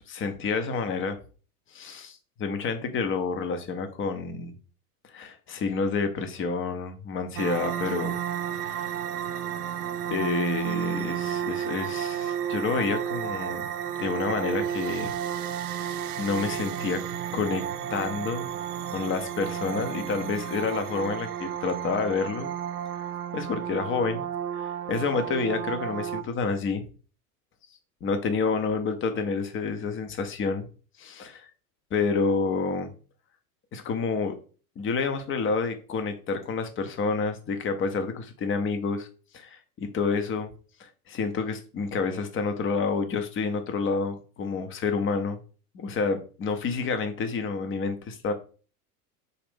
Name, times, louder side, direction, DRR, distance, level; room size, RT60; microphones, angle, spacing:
voice 1, 0.1-1.2 1.7-4.5 5.1-8.1 8.5-8.9 10.1-13.7 14.0-15.1 16.2-17.0 17.3-18.5 18.9-22.5 23.3-24.3 24.6-26.8 28.0-30.7 31.0-31.5 31.9-32.9 33.7-34.4 34.8-39.1 39.3-40.5 40.8-45.4 45.7-48.3, left 4 dB, 25° left, 8 dB, 0.7 m, -29 dB
sound 1, 7.4-26.2, right 9 dB, 80° right, 0.5 m, -32 dB
3.9 x 2.5 x 3.5 m, 0.38 s
hypercardioid pair, 85°, 45 cm